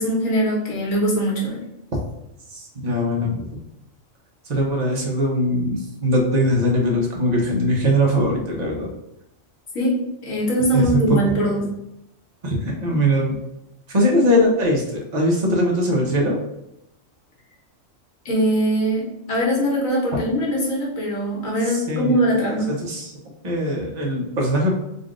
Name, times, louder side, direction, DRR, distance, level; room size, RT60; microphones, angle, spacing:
voice 1, 0.0-1.6 9.7-11.7 18.2-22.7, equal, 80° left, -3 dB, 1.6 m, -21 dB
voice 2, 2.5-3.4 4.5-8.9 10.7-11.2 12.4-13.3 13.9-16.4 21.6-22.2 22.7-23.1 23.4-24.7, equal, 35° right, -1 dB, 1.0 m, -21 dB
3.9 x 2.4 x 3.7 m, 0.83 s
omnidirectional pair, 1.4 m